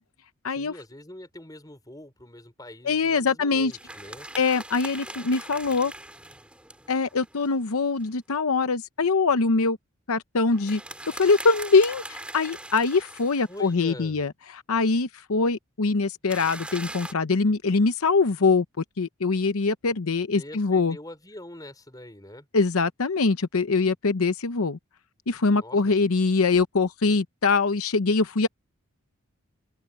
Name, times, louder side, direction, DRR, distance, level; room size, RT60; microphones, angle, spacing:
voice 1, 0.5-4.3 13.5-14.2 20.3-22.5 25.6-26.0, left 1 dB, 15° left, 4.9 m, -43 dB
voice 2, 2.8-3.7 4.4-5.9 6.9-9.8 10.1-10.8 11.1-18.6 19.0-21.0 22.5-24.8 25.3-28.5, left 4 dB, 80° left, 0.8 m, -23 dB
sound 1, 3.7-8.1 10.5-13.8 16.3-17.1, right 1 dB, 5° right, 3.1 m, -41 dB
open air
head